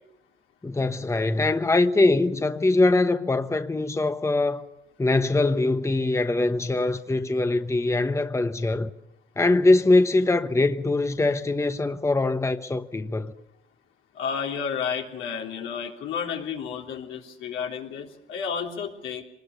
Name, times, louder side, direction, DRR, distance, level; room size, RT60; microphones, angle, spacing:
voice 1, 0.6-4.6 5.0-8.9 9.4-13.3, left 2 dB, 15° left, 1.0 m, -22 dB
voice 2, 14.1-19.2, left 7 dB, 85° left, 3.5 m, -31 dB
24.0 x 20.0 x 7.0 m
cardioid pair, 90°, 20 cm